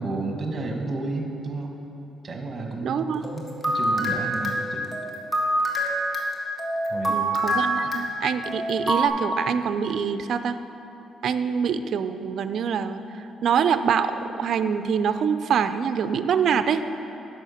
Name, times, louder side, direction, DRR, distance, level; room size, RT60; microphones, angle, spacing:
voice 1, 0.0-1.8 2.2-4.9 6.9-7.2 7.8-7.9, right 2 dB, 35° right, 2 dB, 1.4 m, -32 dB
voice 2, 2.8-3.2 7.1-10.6 11.2-16.8, right 7 dB, 65° right, 11 dB, 0.4 m, -25 dB
sound 1, 3.2-9.1, right 1 dB, 15° left, 1.5 m, -26 dB
9.1 x 6.5 x 5.7 m, 3.0 s
cardioid pair, 90°, 0 cm